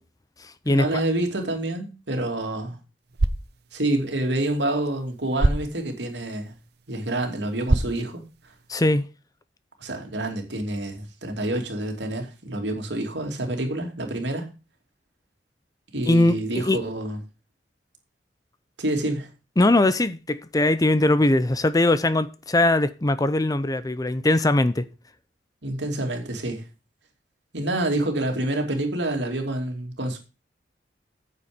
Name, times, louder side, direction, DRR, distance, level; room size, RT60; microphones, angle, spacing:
voice 1, 0.7-2.8 3.7-6.5 6.9-8.2 9.8-14.5 15.9-17.2 18.8-19.3 25.6-26.6 27.5-30.2, right 1 dB, 85° right, 2.7 m, -27 dB
sound 1, 3.0-9.0, right 2 dB, 65° right, 0.9 m, -29 dB
voice 2, 8.7-9.1 16.1-16.4 16.6-16.8 19.6-24.8, left 2 dB, 20° left, 0.6 m, -20 dB
9.5 x 7.0 x 5.1 m
head